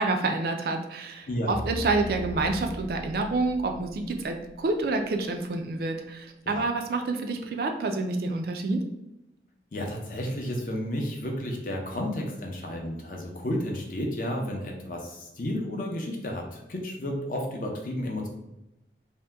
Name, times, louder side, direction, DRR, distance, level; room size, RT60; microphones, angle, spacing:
voice 1, 0.0-8.8, right 3 dB, 55° right, 4 dB, 0.3 m, -28 dB
sound 1, 1.2-5.1, equal, 75° left, 0.9 m, -40 dB
voice 2, 9.7-18.3, left 1 dB, 50° left, 1 dB, 0.5 m, -32 dB
2.7 x 2.1 x 3.4 m, 0.92 s
head